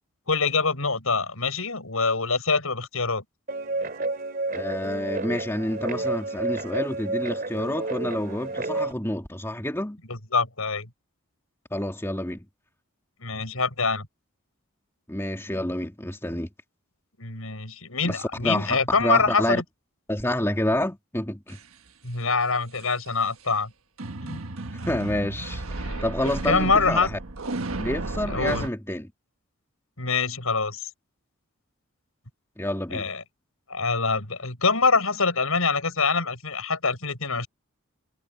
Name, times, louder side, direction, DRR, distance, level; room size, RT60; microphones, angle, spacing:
voice 1, 0.3-3.2 10.1-10.9 13.2-14.1 17.2-19.6 22.0-23.7 24.2-24.4 25.8-26.1 26.5-27.1 28.3-28.7 30.0-30.8 32.9-33.2 33.7-37.5, left 4 dB, 80° left, 6.0 m, -25 dB
Guitar, 3.5-8.9, right 2 dB, 45° right, 2.7 m, -30 dB
voice 2, 4.5-10.0 11.7-12.4 15.1-16.5 18.0-19.6 20.1-21.6 24.8-27.2 27.8-29.1 32.6-33.1, left 1 dB, 10° left, 2.9 m, -28 dB
sound 1, 21.5-21.6 22.8-23.1 24.0-28.7, right 2 dB, 75° right, 1.4 m, -33 dB
head